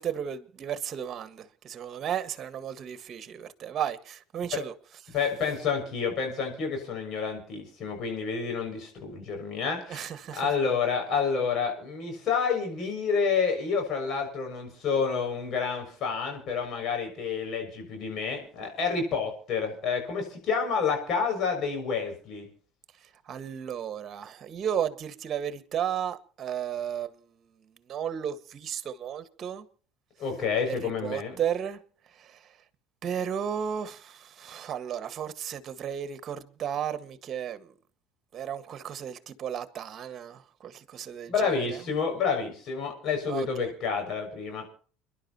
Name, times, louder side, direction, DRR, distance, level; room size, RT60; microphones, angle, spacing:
voice 1, 0.0-4.7 5.0-5.1 9.9-10.5 23.0-27.2 27.9-29.7 30.6-31.8 32.1-32.6 33.0-37.7 38.3-41.8 43.3-43.7, right 9 dB, 45° right, 1.7 m, -34 dB
voice 2, 5.1-10.1 10.4-22.5 30.2-31.4 41.3-44.6, left 5 dB, 55° left, 6.6 m, -29 dB
29.5 x 11.5 x 3.0 m
hypercardioid pair, 75°, 0 cm